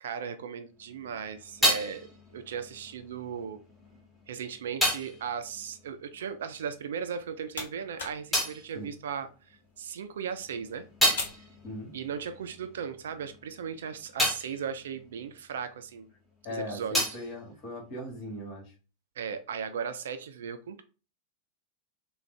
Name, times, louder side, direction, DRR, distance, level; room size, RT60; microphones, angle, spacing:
voice 1, 0.0-2.1 2.3-3.6 4.3-10.9 11.9-16.1 16.5-17.2 19.2-20.8, right 7 dB, 60° right, 0.4 m, -37 dB
sound 1, 0.8-6.8 7.1-9.8 10.2-16.2 16.4-18.5, equal, 5° left, 1.6 m, -33 dB
sound 2, 7.0-12.3, left 2 dB, 65° left, 1.1 m, -44 dB
voice 2, 16.4-18.7, left 1 dB, 40° left, 1.6 m, -39 dB
3.7 x 2.3 x 3.2 m
figure-of-eight pair, 90°, 0 cm